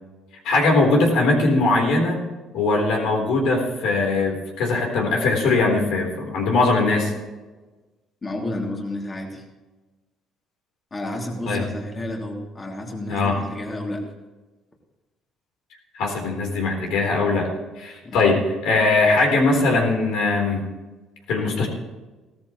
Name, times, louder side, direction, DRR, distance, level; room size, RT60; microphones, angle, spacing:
voice 1, 0.4-2.2 2.5-7.1 11.5-11.6 13.1-13.4 15.9-17.5 17.8-20.6 21.3-21.7, left 3 dB, 75° left, 0 dB, 4.0 m, -20 dB
voice 2, 8.2-9.4 10.9-14.0 18.0-18.3, left 1 dB, 30° left, 0 dB, 2.9 m, -31 dB
17.0 x 14.0 x 3.2 m, 1.2 s
supercardioid pair, 80°, 0 cm